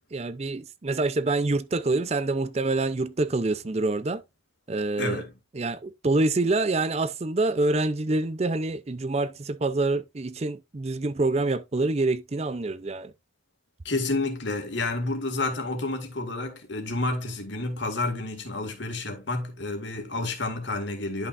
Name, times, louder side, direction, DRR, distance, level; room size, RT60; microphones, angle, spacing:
voice 1, 0.1-4.2 4.7-5.2 5.5-13.1, right 2 dB, 35° right, 0.5 m, -26 dB
voice 2, 5.0-5.3 13.8-21.3, left 2 dB, 75° left, 2.2 m, -30 dB
11.0 x 5.6 x 2.5 m
head